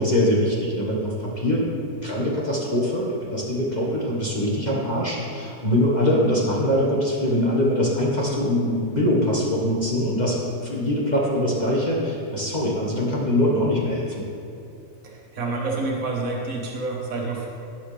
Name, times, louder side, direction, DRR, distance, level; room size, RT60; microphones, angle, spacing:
voice 1, 0.0-1.7 2.0-14.2, left 1 dB, 30° left, -5 dB, 1.7 m, -23 dB
voice 2, 15.0-17.5, right 3 dB, 75° right, -2 dB, 1.8 m, -28 dB
17.5 x 7.2 x 3.4 m, 2.6 s
omnidirectional pair, 1.4 m